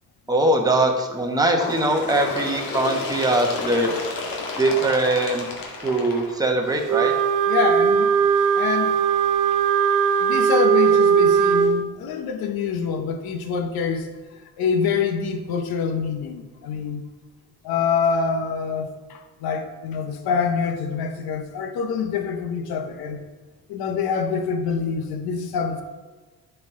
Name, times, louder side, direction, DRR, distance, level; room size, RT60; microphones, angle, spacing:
voice 1, 0.3-3.9 4.6-5.5 5.8-7.1, right 2 dB, 10° right, 2 dB, 1.1 m, -21 dB
Bird, 1.5-6.9 7.8-7.9 8.3-8.4 9.3-9.4 10.3-10.4 11.3-11.4, left 3 dB, 70° left, 1.6 m, -31 dB
Wind instrument woodwind instrument, 6.9-11.7, right 7 dB, 60° right, 0.6 m, -19 dB
voice 2, 7.5-8.1 8.6-9.0 10.2-14.1 14.6-17.0 17.6-23.2 23.7-25.8, left 5 dB, 90° left, 6 dB, 0.9 m, -25 dB
9.5 x 4.7 x 3.7 m, 1.3 s
cardioid pair, 95°, 36 cm